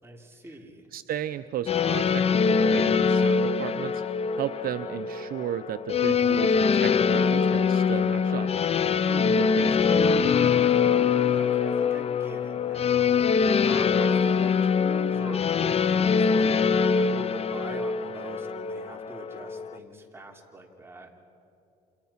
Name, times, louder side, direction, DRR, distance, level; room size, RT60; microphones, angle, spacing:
voice 1, 0.0-0.9 11.3-13.2 13.6-21.1, right 2 dB, 15° right, 1 dB, 3.5 m, -43 dB
voice 2, 0.9-4.0 4.4-8.5 9.1-10.5, right 10 dB, 60° right, 10 dB, 0.8 m, -34 dB
sound 1, 1.7-19.7, left 6 dB, 35° left, 0.7 m, -23 dB
29.5 x 27.5 x 5.9 m, 2.7 s
cardioid pair, 110°, 17 cm